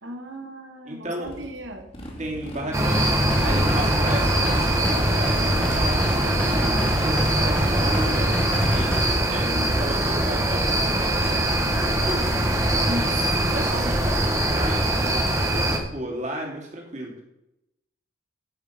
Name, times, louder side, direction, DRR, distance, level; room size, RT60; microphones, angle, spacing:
voice 1, 0.0-1.9 9.2-9.7 12.9-14.3, equal, 70° right, 3 dB, 2.0 m, -35 dB
voice 2, 0.9-1.3 2.2-9.0 9.3-11.5 11.8-12.3 13.5-17.2, right 1 dB, 35° right, -1 dB, 2.9 m, -34 dB
Motorcycle, 1.2-9.9, equal, 30° left, 2.6 m, -39 dB
sound 1, 2.7-15.8, right 1 dB, 15° right, 1.4 m, -23 dB
sound 2, 2.9-9.1, equal, 5° left, 1.7 m, -27 dB
13.0 x 6.3 x 5.2 m, 0.88 s
head